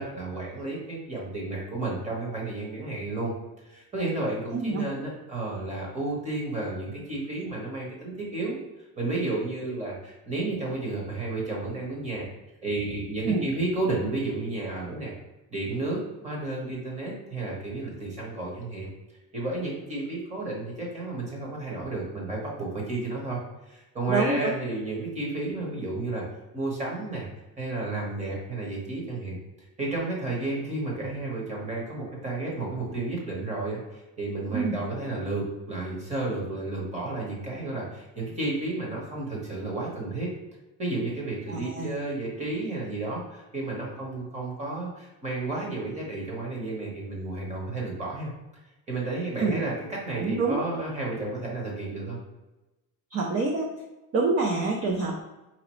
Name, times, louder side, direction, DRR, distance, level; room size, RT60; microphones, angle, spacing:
voice 1, 0.0-3.3 3.6-8.6 9.0-12.3 12.6-15.1 15.5-18.9 19.3-23.4 23.7-26.2 26.5-27.3 27.6-29.4 29.8-40.3 40.8-48.3 48.9-52.2, right 2 dB, 20° right, -3 dB, 1.2 m, -32 dB
voice 2, 4.5-4.9 13.3-13.5 24.1-24.5 34.5-34.7 41.5-41.9 49.4-49.5 50.2-50.6 53.1-53.7 54.1-55.2, right 3 dB, 40° right, -1 dB, 0.5 m, -26 dB
4.9 x 2.9 x 3.0 m, 1.0 s
cardioid pair, 170°, 37 cm